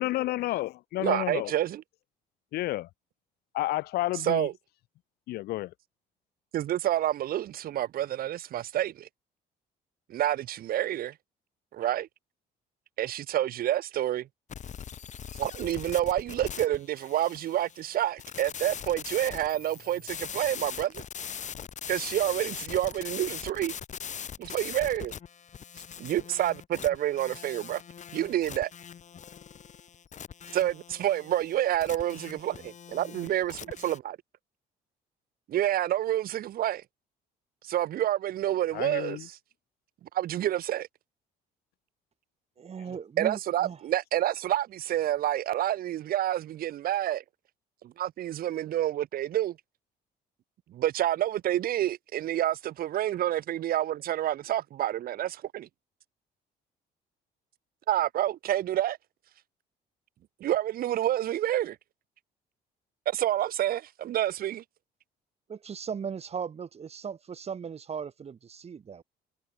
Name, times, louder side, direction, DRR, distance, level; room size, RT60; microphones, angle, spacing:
voice 1, 0.0-1.5 2.5-2.9 3.5-4.5 5.3-5.7 38.7-39.3, left 17 dB, 70° left, 0.5 m, -30 dB
voice 2, 1.0-1.8 4.2-4.5 6.5-9.1 10.1-11.1 11.7-12.1 13.0-14.3 15.4-21.0 21.9-23.7 24.4-25.1 26.0-27.8 28.1-28.7 30.5-34.2 35.5-36.8 37.6-39.4 40.1-40.9 43.2-47.2 47.8-49.6 50.7-55.7 57.9-59.0 60.4-61.8 63.0-64.6, right 12 dB, 60° right, 1.4 m, -28 dB
sound 1, 14.5-34.0, left 8 dB, 45° left, 6.8 m, -41 dB
voice 3, 42.6-43.8 65.5-69.0, right 7 dB, 40° right, 5.1 m, -37 dB
cardioid pair, 110°, 17 cm